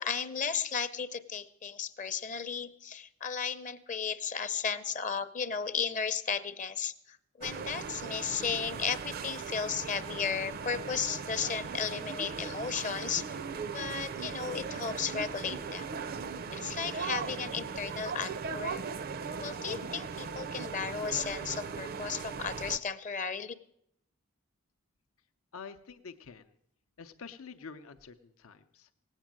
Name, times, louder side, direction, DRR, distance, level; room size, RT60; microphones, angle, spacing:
voice 1, 0.0-13.4 13.7-16.0 16.5-18.9 19.4-23.5, left 6 dB, 35° left, 12 dB, 0.6 m, -34 dB
sound 1, 7.4-22.8, right 5 dB, 45° right, 0.4 m, -38 dB
voice 2, 25.5-26.5 27.0-28.9, left 5 dB, 80° left, 8 dB, 0.6 m, -47 dB
18.0 x 8.2 x 7.4 m, 0.75 s
head